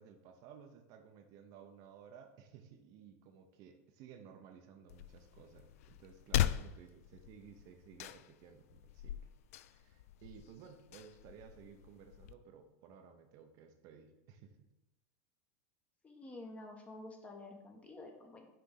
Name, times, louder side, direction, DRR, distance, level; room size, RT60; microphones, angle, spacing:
voice 1, 0.0-9.2 9.6-14.7, right 7 dB, 50° right, 6 dB, 0.8 m, -57 dB
sound 1, 4.9-12.3, left 12 dB, 75° left, 0.3 m, -40 dB
voice 2, 16.0-18.5, left 2 dB, 15° left, 2 dB, 1.1 m, -50 dB
6.5 x 3.5 x 5.8 m, 0.95 s
supercardioid pair, 130°, 8 cm